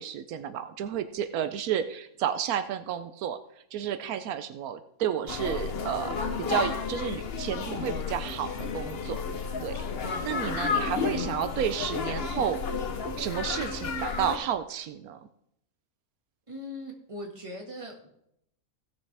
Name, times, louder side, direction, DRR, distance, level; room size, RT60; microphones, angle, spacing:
voice 1, 0.0-3.4 3.7-9.2 9.6-12.6 13.2-15.3, right 9 dB, 85° right, 10 dB, 1.1 m, -31 dB
sound 1, 5.3-14.4, left 5 dB, 50° left, 1.0 m, -32 dB
voice 2, 16.5-18.1, left 1 dB, 20° right, 1 dB, 1.7 m, -40 dB
17.0 x 6.5 x 3.4 m, 0.75 s
omnidirectional pair, 1.5 m